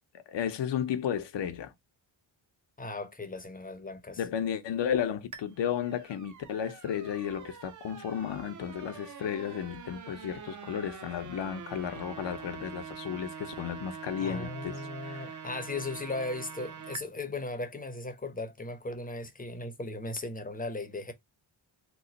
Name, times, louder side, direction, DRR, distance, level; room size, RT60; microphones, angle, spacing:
voice 1, 0.3-1.7 4.2-14.8 15.1-15.3, left 9 dB, 60° left, 0.7 m, -33 dB
voice 2, 2.8-4.2 14.2-21.1, left 2 dB, 20° left, 0.6 m, -37 dB
sound 1, 5.3-17.0, right 6 dB, 40° right, 0.6 m, -44 dB
3.0 x 2.1 x 3.9 m
cardioid pair, 90°, 49 cm